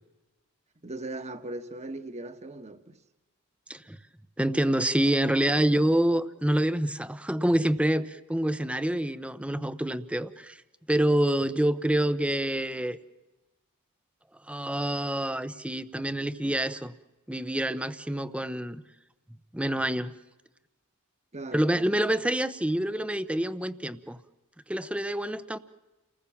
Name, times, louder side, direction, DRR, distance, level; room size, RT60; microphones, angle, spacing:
voice 1, 0.8-3.0 21.3-21.9, right 2 dB, 30° right, 1.5 m, -39 dB
voice 2, 4.4-10.6 10.9-13.0 14.5-16.9 17.3-18.8 19.5-20.1 21.5-24.2 24.7-25.6, right 1 dB, 5° right, 0.9 m, -27 dB
29.5 x 20.0 x 7.3 m
head